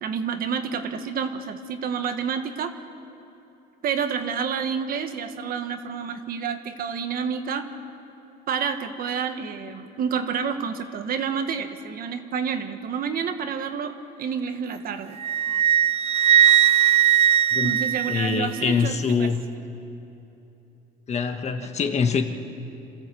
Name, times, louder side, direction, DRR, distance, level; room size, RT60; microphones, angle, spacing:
voice 1, 0.0-2.8 3.8-7.7 8.5-15.2 17.6-19.3 21.6-21.7, right 6 dB, 60° right, 7 dB, 1.4 m, -29 dB
Wind instrument woodwind instrument, 15.2-18.7, right 11 dB, 40° right, 0.4 m, -19 dB
voice 2, 17.5-17.8 18.1-19.4 21.1-22.2, left 5 dB, 40° left, 6 dB, 1.5 m, -24 dB
27.0 x 14.0 x 7.8 m, 2.9 s
cardioid pair, 110°, 17 cm